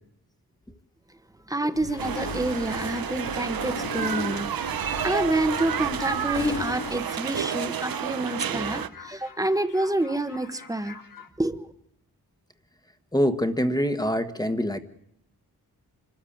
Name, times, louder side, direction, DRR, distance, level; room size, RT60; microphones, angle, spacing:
voice 1, 1.5-11.0 11.4-11.7, right 1 dB, 10° right, 10 dB, 1.2 m, -28 dB
sound 1, 1.7-7.0, left 4 dB, 85° left, 3.1 m, -36 dB
sound 2, 1.9-11.3, left 5 dB, 60° left, 2.2 m, -46 dB
sound 3, 2.0-8.9, right 9 dB, 70° right, 0.7 m, -30 dB
voice 2, 13.1-14.8, equal, 10° left, 9 dB, 1.4 m, -24 dB
26.5 x 13.0 x 8.6 m, 0.76 s
wide cardioid pair, 140°, 37 cm